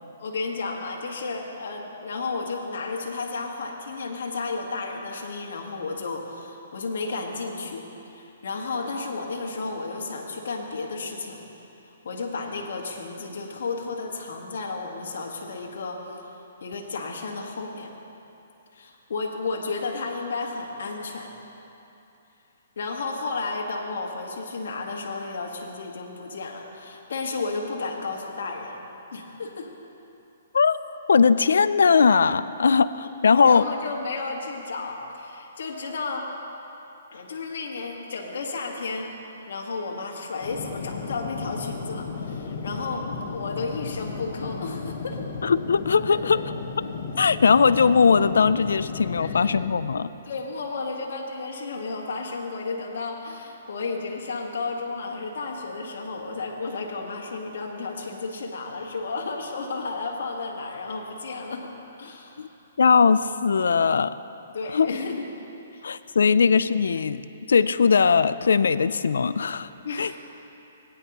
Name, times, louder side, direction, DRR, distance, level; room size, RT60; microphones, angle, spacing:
voice 1, 0.2-7.8 8.1-11.4 12.0-16.0 16.6-17.9 18.7-21.3 22.8-28.8 29.1-29.7 33.4-36.3 37.1-39.1 39.5-45.2 46.1-46.2 49.2-49.5 50.2-61.7 62.0-62.5 64.5-65.3 65.7-65.8 66.3-66.4 69.8-70.2, left 3 dB, 70° left, 0 dB, 1.4 m, -32 dB
voice 2, 31.1-33.7 45.4-46.4 47.2-50.1 62.4-62.5 62.8-64.2 64.7-64.9 65.8-67.2 67.5-69.7 70.0-70.2, left 5 dB, 85° left, 15 dB, 0.3 m, -19 dB
sound 1, 40.4-49.7, left 5 dB, 50° left, 1.1 m, -34 dB
17.5 x 9.9 x 2.9 m, 2.9 s
hypercardioid pair, 155°, 0 cm